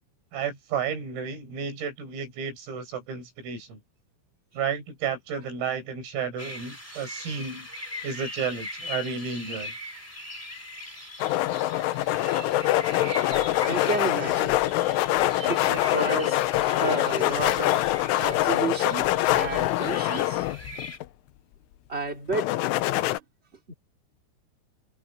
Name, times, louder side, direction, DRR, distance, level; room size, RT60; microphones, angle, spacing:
voice 1, 0.3-3.8 4.5-7.7 8.0-9.7, right 6 dB, 80° right, 7.8 m, -32 dB
sound 1, 6.4-21.0, left 1 dB, 5° left, 1.5 m, -40 dB
sound 2, 11.2-21.0 22.3-23.2, left 16 dB, 80° left, 3.2 m, -24 dB
voice 2, 12.4-12.7 13.7-14.6 15.2-17.9 18.2-20.4 21.9-22.5 23.7-23.8, right 3 dB, 20° right, 2.2 m, -32 dB
omnidirectional pair, 5.9 m